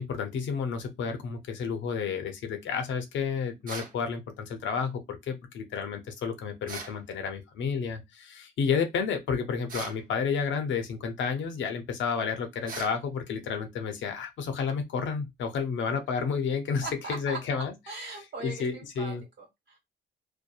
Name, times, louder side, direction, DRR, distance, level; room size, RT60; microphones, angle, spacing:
voice 1, 0.0-17.7 18.1-19.2, left 6 dB, 70° left, 0.6 m, -31 dB
sound 1, 3.7-4.0 6.7-7.0 9.7-10.0 12.7-13.0, right 3 dB, 45° right, 0.8 m, -39 dB
voice 2, 16.8-19.8, right 3 dB, 60° right, 1.4 m, -40 dB
2.7 x 2.2 x 2.3 m
cardioid pair, 90°, 20 cm